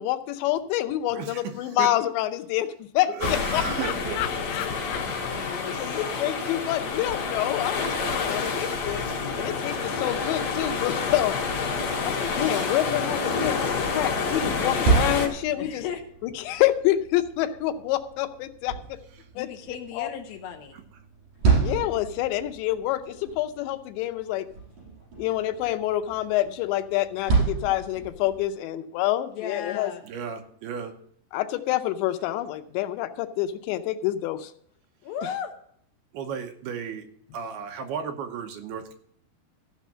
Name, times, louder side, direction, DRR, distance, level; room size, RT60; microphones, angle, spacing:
voice 1, 0.0-5.0 5.8-9.0 9.4-11.4 12.0-15.8 16.2-19.0 19.4-19.5 19.9-20.1 21.6-24.5 25.2-29.9 31.3-34.5 35.2-35.3, left 14 dB, 90° left, 9 dB, 3.1 m, -27 dB
voice 2, 1.1-1.9 3.1-4.2 5.1-5.2 20.7-20.8 30.0-30.9 36.1-37.1 37.3-38.9, right 7 dB, 75° right, 5 dB, 2.8 m, -34 dB
sound 1, 3.2-15.3, left 4 dB, 55° left, 3.3 m, -28 dB
voice 3, 5.4-6.0 15.5-16.0 19.4-20.8 29.3-30.0 35.0-35.5, left 8 dB, 75° left, 6 dB, 2.5 m, -35 dB
sound 2, 14.6-28.5, right 5 dB, 50° right, 5.6 m, -30 dB
14.5 x 5.6 x 7.4 m, 0.64 s
omnidirectional pair, 5.0 m